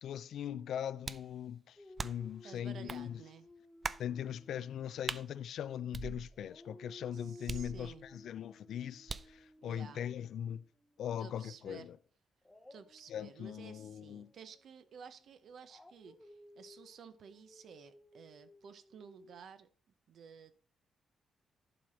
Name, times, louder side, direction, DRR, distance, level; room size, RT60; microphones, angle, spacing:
voice 1, 0.0-3.2 4.0-10.6 11.0-12.0 13.1-14.3, left 9 dB, 75° left, 0.4 m, -40 dB
sound 1, 1.0-1.3 2.0-2.4 2.9-3.0 3.8-4.1 5.1-5.3 5.9-6.6 7.5-8.2 9.1-9.4, right 4 dB, 30° right, 0.4 m, -41 dB
Dog, 1.8-5.9 6.3-11.3 12.4-19.4, left 1 dB, 10° left, 0.8 m, -58 dB
voice 2, 2.4-3.5 7.1-8.1 9.6-10.0 11.2-11.9 12.7-19.7 20.1-20.5, right 7 dB, 65° right, 0.8 m, -54 dB
11.0 x 5.0 x 4.3 m
cardioid pair, 135°, 0 cm